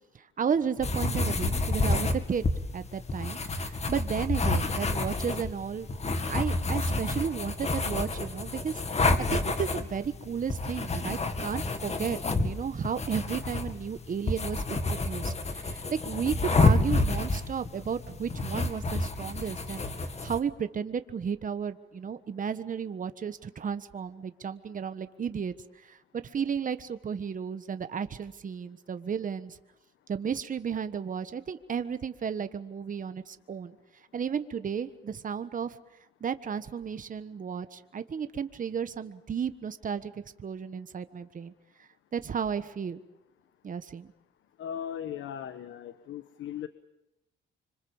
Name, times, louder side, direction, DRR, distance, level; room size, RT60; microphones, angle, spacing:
voice 1, 0.1-2.4 2.7-5.9 6.3-19.9 20.2-25.5 25.8-29.6 30.1-33.8 34.1-35.8 36.2-41.5 42.1-43.0 43.6-44.1, right 7 dB, 40° right, 11 dB, 1.4 m, -33 dB
sound 1, 0.8-20.4, left 2 dB, 35° left, 2.2 m, -29 dB
voice 2, 44.6-46.7, left 9 dB, 75° left, 11 dB, 1.2 m, -38 dB
26.0 x 25.5 x 7.2 m, 0.90 s
cardioid pair, 90°, 20 cm